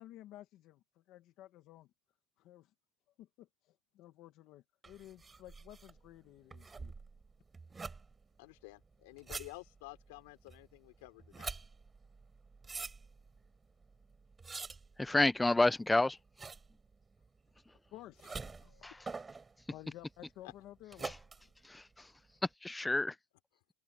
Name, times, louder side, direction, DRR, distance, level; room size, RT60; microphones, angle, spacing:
voice 1, 0.0-1.9 2.4-2.7 3.2-6.9 17.9-18.3 18.6-18.9 19.7-21.1, left 14 dB, 40° left, 1.3 m, -54 dB
sound 1, 4.8-22.5, right 4 dB, 15° right, 3.4 m, -48 dB
voice 2, 8.4-11.6 18.2-19.0 20.4-20.5, left 23 dB, 75° left, 3.7 m, -52 dB
voice 3, 15.0-16.2 18.8-18.9 21.0-21.2 21.6-22.1 22.6-23.2, left 2 dB, 5° left, 0.3 m, -29 dB
open air
cardioid pair, 170°, 0 cm